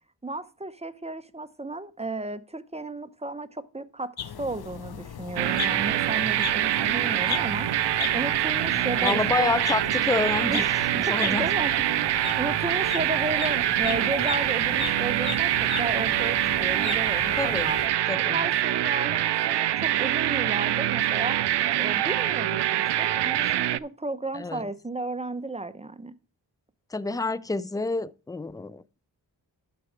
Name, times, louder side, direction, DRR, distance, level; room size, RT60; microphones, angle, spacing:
voice 1, 0.2-7.7 8.1-9.5 10.5-10.7 11.2-11.9 12.4-17.8 18.3-21.4 21.8-26.2, right 2 dB, 15° right, 0.8 m, -34 dB
sound 1, 4.2-17.9, left 8 dB, 60° left, 0.8 m, -37 dB
sound 2, 5.4-23.8, right 13 dB, 70° right, 0.5 m, -25 dB
voice 2, 9.0-11.5 17.4-17.8 18.1-18.5 24.3-24.7 26.9-29.0, left 3 dB, 10° left, 0.4 m, -28 dB
11.5 x 4.7 x 5.0 m
cardioid pair, 45°, 43 cm